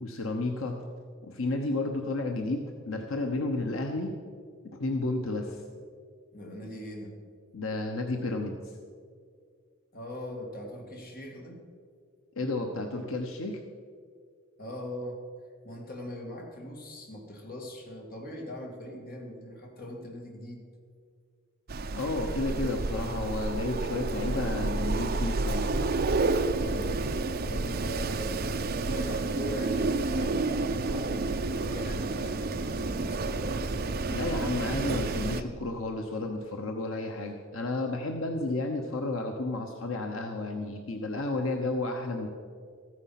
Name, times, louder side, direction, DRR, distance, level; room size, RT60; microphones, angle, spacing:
voice 1, 0.0-0.8 1.2-4.1 4.8-5.6 7.5-8.7 12.4-13.6 21.9-25.7 34.1-42.3, left 2 dB, 75° left, 3 dB, 0.9 m, -32 dB
voice 2, 6.3-7.2 9.9-11.6 14.6-15.3 15.6-20.7 26.5-27.0 27.5-33.5, equal, 45° left, 1 dB, 2.2 m, -41 dB
Wind, 21.7-35.4, right 3 dB, 50° right, 0.6 m, -30 dB
14.0 x 9.6 x 5.8 m, 2.1 s
head